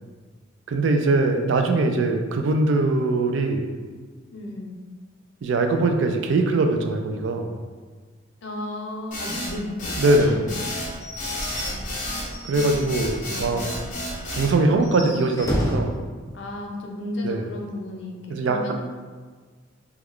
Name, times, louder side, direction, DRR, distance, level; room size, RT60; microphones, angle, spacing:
voice 1, 0.7-3.7 5.4-7.6 10.0-10.4 12.4-13.6 14.3-16.0 17.2-17.4 18.3-18.7, right 2 dB, 75° right, 5 dB, 0.4 m, -22 dB
voice 2, 4.3-4.8 8.4-10.6 12.5-12.9 13.3-13.8 16.3-18.7, left 1 dB, 65° left, 0 dB, 0.5 m, -34 dB
sound 1, 9.1-14.5, left 1 dB, 40° left, 0.9 m, -31 dB
Slam / Squeak / Wood, 10.2-13.4 13.7-13.8 14.1-14.2 14.7-16.0, equal, 15° left, 0.5 m, -32 dB
3.6 x 2.3 x 3.1 m, 1.4 s
head